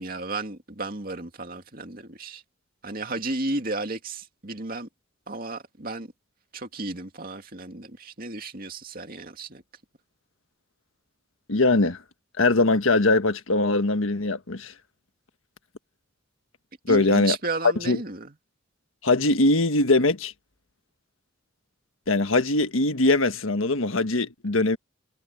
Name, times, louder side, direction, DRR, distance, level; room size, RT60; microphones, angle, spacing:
voice 1, 0.0-2.4 2.8-4.9 5.3-6.1 6.5-9.6 16.9-18.3, right 2 dB, 45° right, 2.5 m, -33 dB
voice 2, 11.5-12.0 12.4-14.7 16.9-17.4 17.8-18.0 19.0-20.3 22.1-24.8, left 2 dB, 90° left, 1.5 m, -21 dB
head